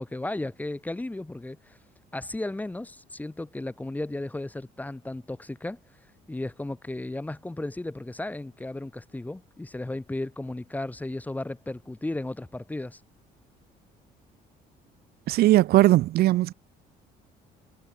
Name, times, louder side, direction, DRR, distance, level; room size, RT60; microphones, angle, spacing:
voice 1, 0.0-1.8 2.1-5.8 6.3-13.0, left 2 dB, 10° left, 1.1 m, -34 dB
voice 2, 15.3-16.5, right 16 dB, 65° right, 0.6 m, -19 dB
cardioid pair, 110°, 17 cm